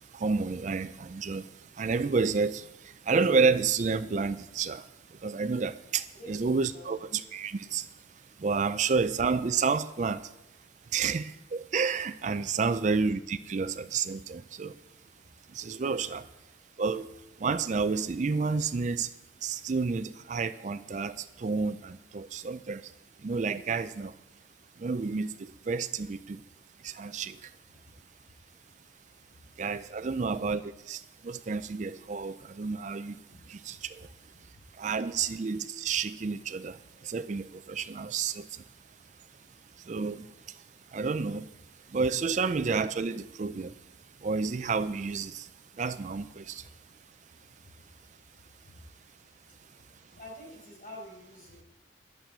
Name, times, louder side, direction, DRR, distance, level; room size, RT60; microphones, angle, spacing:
voice 1, 0.1-1.5 1.8-2.7 3.1-4.8 5.2-7.8 8.4-10.3 10.9-14.7 15.5-16.2 16.8-17.1 17.4-19.1 19.4-22.8 23.2-24.1 24.8-25.3 25.7-26.4 26.8-27.4 29.6-30.6 30.9-33.1 33.5-34.1 34.8-36.8 37.0-38.4 39.9-40.3 40.9-41.5 41.9-43.7 44.2-45.5 45.8-46.6, right 4 dB, 40° right, 13 dB, 0.4 m, -30 dB
voice 2, 6.1-7.1 12.5-12.8 29.3-29.4 33.3-33.4 34.5-34.6 46.6-46.7 47.6-47.7 48.6-48.8 50.1-51.6, left 1 dB, 45° left, -2 dB, 5.5 m, -48 dB
11.5 x 7.6 x 8.4 m, 0.90 s
head